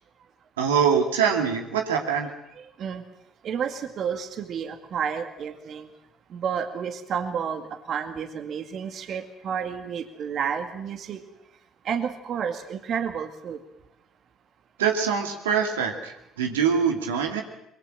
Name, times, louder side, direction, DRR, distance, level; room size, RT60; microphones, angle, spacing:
voice 1, 0.6-2.3 14.8-17.4, right 7 dB, 80° right, 3 dB, 2.3 m, -24 dB
voice 2, 2.6-3.0 3.4-5.9 6.3-7.6 7.9-11.2 11.8-13.6, right 7 dB, 55° right, 7 dB, 2.1 m, -30 dB
22.5 x 22.0 x 7.5 m, 0.84 s
hypercardioid pair, 50°, 0 cm